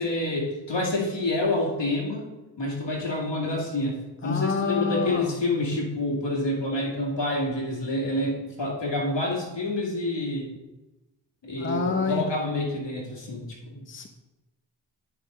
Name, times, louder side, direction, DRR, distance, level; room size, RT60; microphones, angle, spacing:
voice 1, 0.0-2.3 2.6-10.5 11.4-13.9, left 2 dB, 75° left, -2 dB, 2.4 m, -28 dB
voice 2, 4.2-5.4 11.6-12.3 13.9-14.1, left 4 dB, 25° left, 5 dB, 0.8 m, -27 dB
10.0 x 5.6 x 3.9 m, 1.1 s
wide cardioid pair, 60°, 44 cm